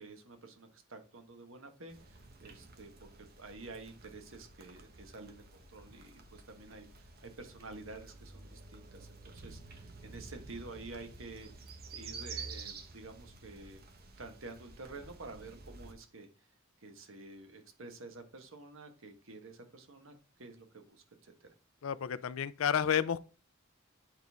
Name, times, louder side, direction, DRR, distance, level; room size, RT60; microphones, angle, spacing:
voice 1, 0.0-11.5 11.9-13.8 14.2-16.3 16.8-21.5, right 3 dB, 75° right, 1.4 m, -50 dB
sound 1, 1.9-15.9, right 4 dB, 50° right, 1.1 m, -50 dB
voice 2, 21.8-23.2, left 8 dB, 85° left, 0.5 m, -31 dB
8.8 x 3.9 x 3.5 m
head